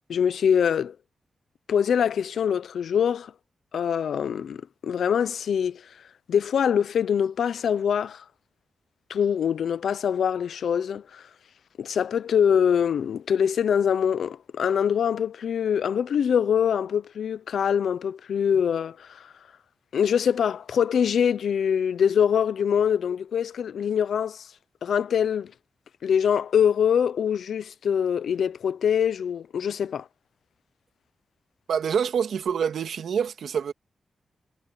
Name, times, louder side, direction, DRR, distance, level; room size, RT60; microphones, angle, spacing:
voice 1, 0.1-0.9 1.7-3.3 3.7-5.9 6.3-8.2 9.1-11.3 11.8-19.3 19.9-24.5 24.8-25.5 26.0-30.1, left 8 dB, 85° left, 0.7 m, -24 dB
voice 2, 31.7-33.7, right 7 dB, 85° right, 2.1 m, -26 dB
cardioid pair, 70°, 0 cm